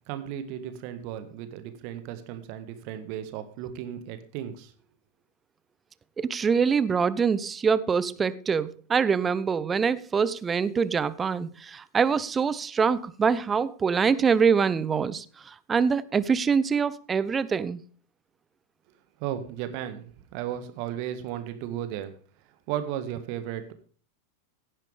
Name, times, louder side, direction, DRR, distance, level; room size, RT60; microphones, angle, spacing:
voice 1, 0.1-4.7 19.2-22.1 22.7-23.7, right 10 dB, 45° right, 1.7 m, -35 dB
voice 2, 6.2-17.8, right 6 dB, 20° right, 0.7 m, -24 dB
16.5 x 10.0 x 3.5 m
figure-of-eight pair, 90°, 0 cm